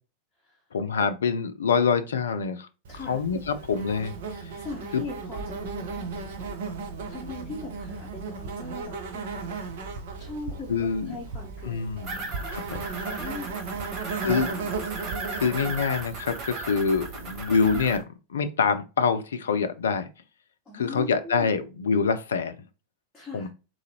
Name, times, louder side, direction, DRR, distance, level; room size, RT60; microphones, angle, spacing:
voice 1, 0.7-2.7 3.0-4.1 4.9-5.0 10.7-11.1 11.6-12.2 12.5-12.8 14.2-14.6 15.3-18.0 18.3-20.1 20.7-22.6 23.3-23.5, left 5 dB, 65° left, 0.5 m, -25 dB
Insect, 2.8-18.0, right 4 dB, 55° right, 0.8 m, -36 dB
voice 2, 2.9-3.2 4.3-6.8 7.1-9.6 10.2-12.5 12.8-15.5 20.6-21.5 23.1-23.5, left 3 dB, 15° left, 1.0 m, -41 dB
sound 1, 12.0-18.0, right 3 dB, 35° right, 1.0 m, -37 dB
3.8 x 3.1 x 2.7 m
figure-of-eight pair, 90°, 0 cm